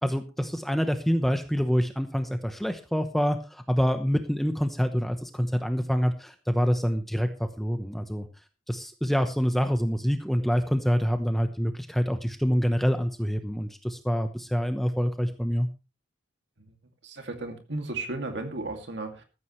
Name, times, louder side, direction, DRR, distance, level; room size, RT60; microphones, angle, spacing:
voice 1, 0.0-8.3 8.7-15.7, equal, ahead, 7 dB, 1.0 m, -26 dB
voice 2, 17.0-19.2, right 2 dB, 65° right, 5 dB, 2.5 m, -34 dB
14.5 x 14.5 x 3.2 m, 0.30 s
head